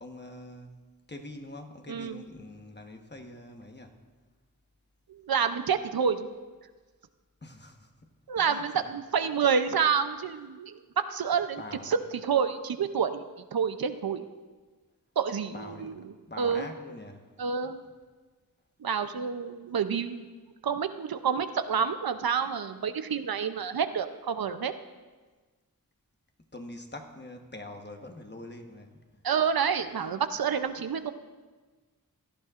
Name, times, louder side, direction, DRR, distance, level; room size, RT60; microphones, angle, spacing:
voice 1, 0.0-0.7 1.1-3.9 7.4-8.9 11.6-11.9 15.5-17.3 17.6-17.7 26.4-29.2 30.0-30.1, left 1 dB, 30° left, 4 dB, 1.2 m, -44 dB
voice 2, 1.9-2.2 5.1-6.3 8.3-13.3 13.5-14.3 15.2-15.9 16.4-16.7 17.4-17.8 18.8-20.3 20.6-24.7 29.2-31.1, right 6 dB, 75° right, 10 dB, 0.6 m, -28 dB
17.0 x 12.0 x 2.5 m, 1.3 s
wide cardioid pair, 55°, 36 cm